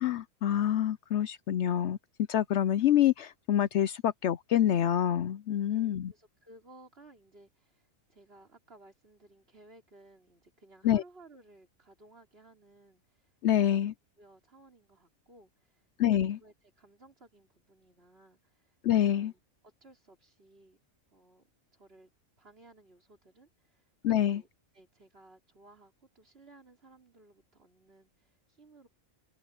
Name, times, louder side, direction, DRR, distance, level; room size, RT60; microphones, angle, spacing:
voice 1, 0.0-2.0 2.3-6.1 10.8-11.0 13.4-13.9 16.0-16.4 18.8-19.3 24.0-24.4, left 11 dB, 65° left, 0.8 m, -26 dB
voice 2, 5.6-13.9 14.2-18.8 19.0-20.8 21.1-22.1 22.4-24.5 24.7-28.9, right 2 dB, 50° right, 4.5 m, -59 dB
omnidirectional pair, 1.4 m